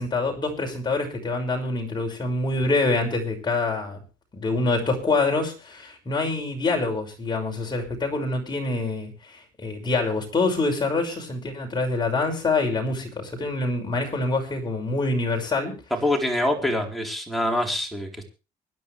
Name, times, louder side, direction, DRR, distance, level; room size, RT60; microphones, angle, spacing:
voice 1, 0.0-4.0 4.3-15.8, left 3 dB, 25° left, 2 dB, 6.0 m, -26 dB
voice 2, 15.9-18.3, left 1 dB, ahead, 0 dB, 4.2 m, -25 dB
25.0 x 10.5 x 3.4 m, 0.33 s
cardioid pair, 110°, 17 cm